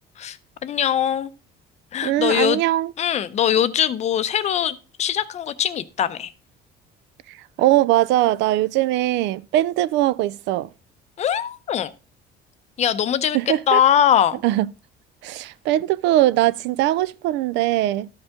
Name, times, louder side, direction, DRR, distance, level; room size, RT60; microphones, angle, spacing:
voice 1, 0.6-1.3 1.9-2.6 3.0-6.3 11.2-11.9 12.8-13.4 13.7-14.4, left 10 dB, 35° left, 0.6 m, -21 dB
voice 2, 2.0-2.9 7.3-10.7 13.3-13.8 14.4-14.7 15.2-18.1, right 15 dB, 70° right, 0.4 m, -21 dB
13.0 x 5.3 x 3.6 m
cardioid pair, 165°, 19 cm